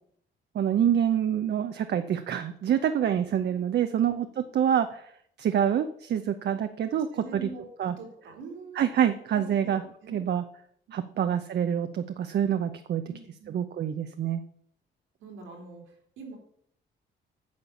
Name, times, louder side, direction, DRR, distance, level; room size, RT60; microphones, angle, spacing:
voice 1, 0.5-4.3 4.5-5.0 5.4-7.1 7.3-7.5 7.8-7.9 8.8-9.8 10.1-10.4 10.9-13.0 13.5-14.4, right 9 dB, 60° right, 8 dB, 0.7 m, -26 dB
voice 2, 2.7-3.1 3.9-4.1 6.9-7.7 8.0-9.7 10.0-10.2 10.9-11.3 13.1-13.6 15.2-16.4, right 3 dB, 90° right, 1 dB, 3.7 m, -45 dB
9.4 x 6.7 x 7.1 m, 0.67 s
cardioid pair, 90°, 20 cm